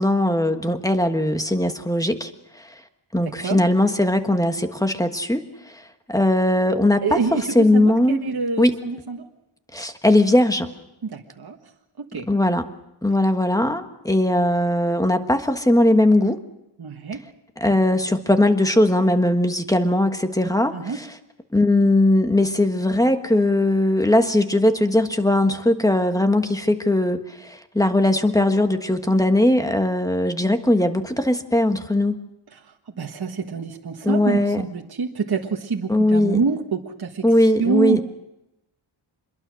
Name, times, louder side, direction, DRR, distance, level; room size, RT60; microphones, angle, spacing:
voice 1, 0.0-2.3 2.6-2.7 3.1-5.8 6.1-7.2 7.5-8.2 8.6-8.7 9.7-10.7 12.3-12.7 13.0-16.4 17.6-21.0 21.5-32.2 34.0-34.6 35.9-36.4 37.2-38.0, left 1 dB, 5° left, 7 dB, 1.4 m, -19 dB
voice 2, 3.2-3.7 7.0-9.2 11.0-11.7 12.0-12.3 16.8-17.2 20.7-21.0 32.5-38.0, right 5 dB, 45° right, 1 dB, 1.5 m, -27 dB
25.5 x 22.0 x 6.4 m, 0.89 s
wide cardioid pair, 145°, 50 cm